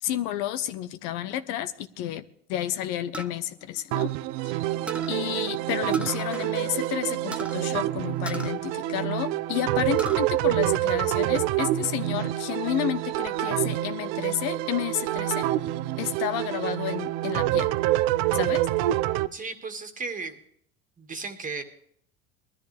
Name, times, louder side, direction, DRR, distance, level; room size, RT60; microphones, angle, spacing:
voice 1, 0.0-2.2 2.5-4.1 4.4-4.6 5.1-15.5 16.0-17.7 18.3-18.7, left 12 dB, 65° left, 1.1 m, -31 dB
sound 1, 3.1-4.5 4.9-5.2 5.9-6.5 6.8-6.9 7.3-7.6 8.2-9.4 9.7-10.2 10.7-11.4, right 1 dB, 5° right, 0.8 m, -38 dB
sound 2, 3.9-19.3, right 14 dB, 65° right, 0.7 m, -27 dB
voice 2, 19.3-20.4 21.0-21.6, right 4 dB, 25° right, 1.9 m, -35 dB
20.5 x 13.0 x 3.5 m
supercardioid pair, 110°, 32 cm